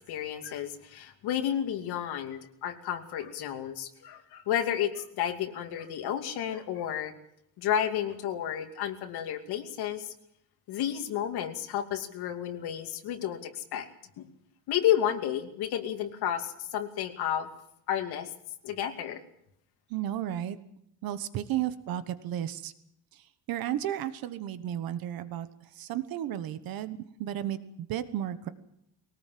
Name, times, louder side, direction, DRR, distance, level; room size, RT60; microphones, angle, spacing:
voice 1, 0.0-7.1 7.6-10.1 10.7-13.9 14.2-14.3 14.7-17.5 17.9-18.3 18.6-19.2, left 10 dB, 70° left, 4 dB, 2.7 m, -31 dB
voice 2, 19.9-20.6 21.0-22.7 23.1-25.5 25.7-28.5, right 11 dB, 60° right, 12 dB, 1.3 m, -33 dB
22.0 x 18.5 x 7.7 m, 0.77 s
cardioid pair, 175°, 39 cm